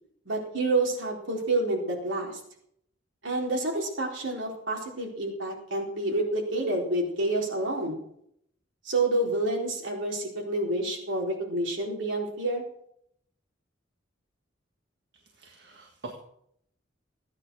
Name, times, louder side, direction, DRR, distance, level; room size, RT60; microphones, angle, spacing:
voice 1, 0.3-2.4 3.2-8.0 8.8-12.6, right 2 dB, 80° right, -1 dB, 4.2 m, -28 dB
voice 2, 15.4-16.1, right 3 dB, 60° right, 2 dB, 1.8 m, -43 dB
16.0 x 9.6 x 6.3 m, 0.72 s
head